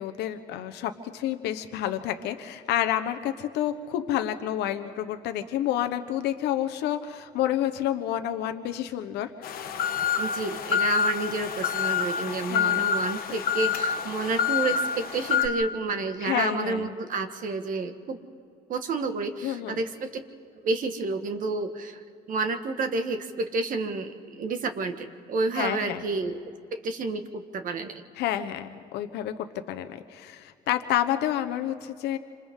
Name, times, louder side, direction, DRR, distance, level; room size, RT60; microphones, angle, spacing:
voice 1, 0.0-9.3 9.7-9.8 12.3-12.9 13.7-13.8 16.2-16.9 19.4-19.9 25.5-26.1 28.2-32.2, left 11 dB, 85° left, 9 dB, 1.1 m, -29 dB
sound 1, 9.4-15.5, left 7 dB, 60° left, 1.3 m, -27 dB
voice 2, 10.2-18.2 18.7-20.1 20.6-22.0 22.3-26.4 26.7-28.0, right 3 dB, 55° right, 7 dB, 1.7 m, -30 dB
27.5 x 26.5 x 3.8 m, 2.4 s
cardioid pair, 110°, 17 cm